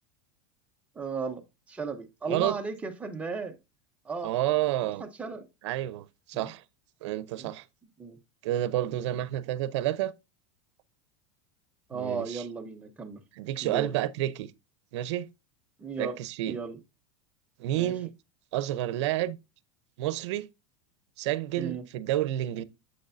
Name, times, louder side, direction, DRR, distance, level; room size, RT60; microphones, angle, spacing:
voice 1, 1.0-3.6 4.0-4.6 5.0-5.5 6.3-6.5 7.4-7.5 8.0-8.2 8.9-9.1 11.9-13.2 13.6-13.9 15.8-16.2 16.5-16.8 17.8-17.9 21.6-21.8, right 4 dB, 10° right, 0.7 m, -36 dB
voice 2, 4.2-5.0 5.6-6.6 7.0-7.6 8.4-10.1 11.9-12.4 13.3-14.5 14.9-15.3 16.0-16.6 17.6-18.1 18.5-19.4 20.0-20.5 21.2-22.6, right 13 dB, 70° right, 0.6 m, -30 dB
7.8 x 6.4 x 2.6 m
supercardioid pair, 170°, 15 cm